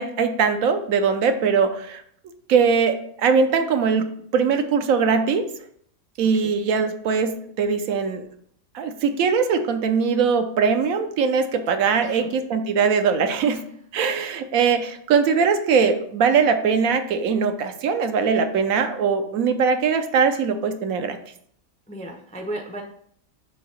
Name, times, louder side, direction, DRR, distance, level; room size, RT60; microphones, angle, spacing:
voice 1, 0.0-2.0 2.5-5.4 6.2-8.3 8.7-13.6 13.9-21.2, right 5 dB, 75° right, 8 dB, 1.1 m, -21 dB
voice 2, 11.8-12.3 21.9-22.8, right 1 dB, 10° left, 2 dB, 0.3 m, -35 dB
6.6 x 2.7 x 5.7 m, 0.64 s
omnidirectional pair, 1.5 m